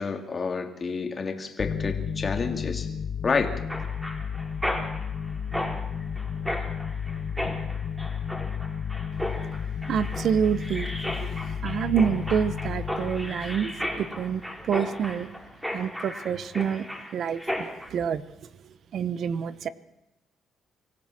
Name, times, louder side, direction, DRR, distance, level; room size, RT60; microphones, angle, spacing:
voice 1, 0.0-2.9 3.2-3.5, left 4 dB, 35° left, 5 dB, 2.8 m, -29 dB
sound 1, 1.6-14.8, left 7 dB, 55° left, 1.4 m, -33 dB
Mechanisms, 3.7-17.9, equal, 5° right, 4.0 m, -35 dB
voice 2, 9.9-10.9 11.6-15.3 15.7-16.9 17.1-17.4 17.9-18.2 18.9-19.7, right 8 dB, 65° right, 15 dB, 1.0 m, -27 dB
25.0 x 15.5 x 7.6 m, 0.95 s
cardioid pair, 90°, 0 cm